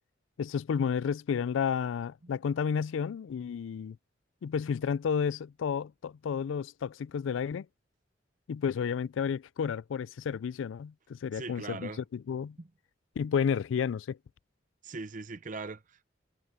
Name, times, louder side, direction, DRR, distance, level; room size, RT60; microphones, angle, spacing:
voice 1, 0.4-4.0 4.4-7.7 8.5-12.6 13.2-14.2, left 7 dB, 85° left, 0.3 m, -31 dB
voice 2, 11.3-12.0 12.6-12.7 14.8-16.1, right 3 dB, 45° right, 0.8 m, -41 dB
head